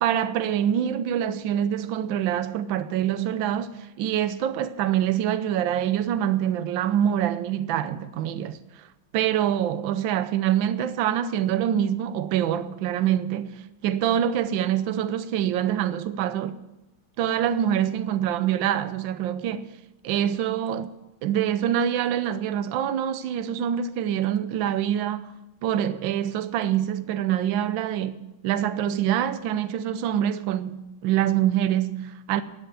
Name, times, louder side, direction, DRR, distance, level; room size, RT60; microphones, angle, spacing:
voice 1, 0.0-8.9 9.1-16.6 17.2-19.7 20.0-20.9 21.2-25.3 25.6-28.2 28.4-32.4, right 10 dB, 70° right, 1.4 m, -25 dB
12.0 x 8.0 x 9.2 m
omnidirectional pair, 2.3 m